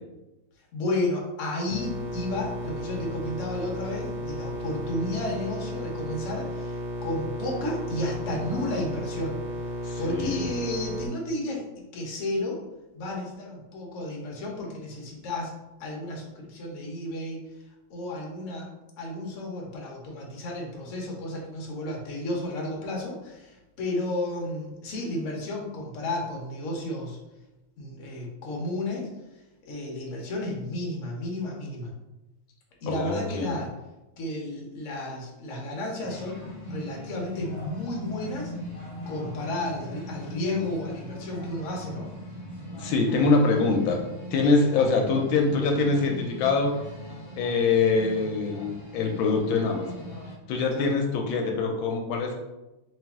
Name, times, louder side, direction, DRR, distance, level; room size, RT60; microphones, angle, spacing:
voice 1, 0.7-9.4 10.0-11.6 11.9-12.6 12.9-15.5 15.8-17.4 17.9-18.7 19.0-27.2 27.8-29.1 29.6-31.9 32.8-33.7 34.2-38.5 39.1-42.1 44.4-44.5 50.7-50.9, left 1 dB, 55° left, -1 dB, 0.9 m, -32 dB
sound 1, 1.7-11.1, left 1 dB, 65° right, 0.8 m, -34 dB
voice 2, 9.8-10.5 32.9-33.6 42.8-44.0 44.3-46.8 47.4-50.1 50.5-52.3, left 4 dB, 75° left, 2 dB, 1.3 m, -24 dB
sound 2, 36.0-50.3, equal, 40° left, 1.3 m, -40 dB
3.2 x 3.1 x 3.5 m, 1.0 s
omnidirectional pair, 2.3 m